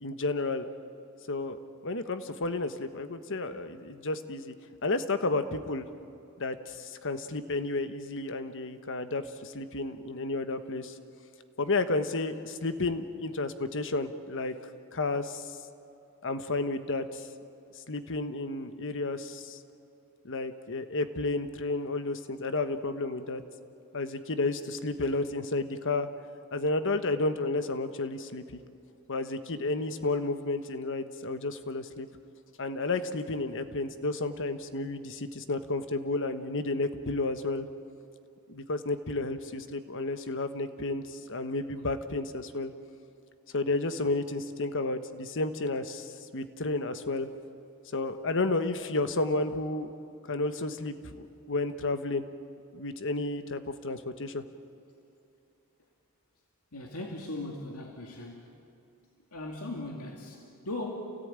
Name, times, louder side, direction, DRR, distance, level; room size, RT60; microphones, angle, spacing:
voice 1, 0.0-0.6 1.3-4.5 4.8-5.8 6.4-10.9 11.6-14.5 14.9-15.5 16.2-17.3 17.9-19.6 20.2-23.4 23.9-26.1 26.5-28.6 29.1-32.1 32.6-37.7 38.5-42.7 43.5-47.3 47.9-49.9 50.3-52.3 52.7-54.4, left 2 dB, 60° left, 9 dB, 1.3 m, -32 dB
voice 2, 56.7-58.5 59.3-61.2, left 1 dB, 85° left, 1 dB, 2.4 m, -38 dB
28.5 x 17.5 x 8.9 m, 2.7 s
head